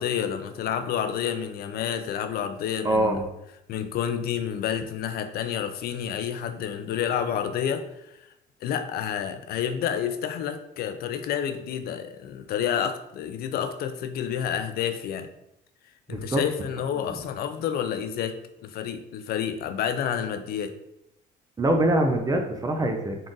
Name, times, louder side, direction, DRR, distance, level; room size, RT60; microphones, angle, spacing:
voice 1, 0.0-3.2 3.7-7.8 8.6-15.3 16.1-18.4 18.6-20.7, left 9 dB, 65° left, 9 dB, 0.4 m, -29 dB
voice 2, 2.8-3.2 16.1-16.4 17.0-17.2 21.6-23.2, right 1 dB, 20° right, 4 dB, 0.5 m, -24 dB
3.7 x 2.4 x 3.8 m, 0.85 s
cardioid pair, 110°, 17 cm